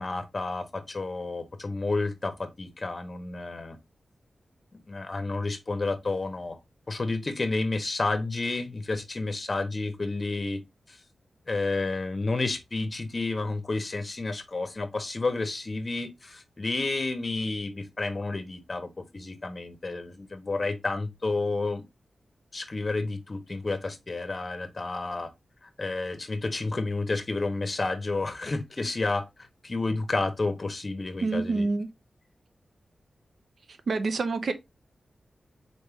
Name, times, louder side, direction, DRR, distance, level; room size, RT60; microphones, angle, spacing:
voice 1, 0.0-3.8 4.7-6.6 6.9-10.6 10.9-11.0 11.5-21.8 22.5-25.3 25.8-29.2 29.6-31.7, left 3 dB, 35° left, 0.7 m, -30 dB
voice 2, 31.2-31.9 33.9-34.5, right 3 dB, 65° right, 0.6 m, -27 dB
4.2 x 3.5 x 2.8 m
wide cardioid pair, 145°, 0 cm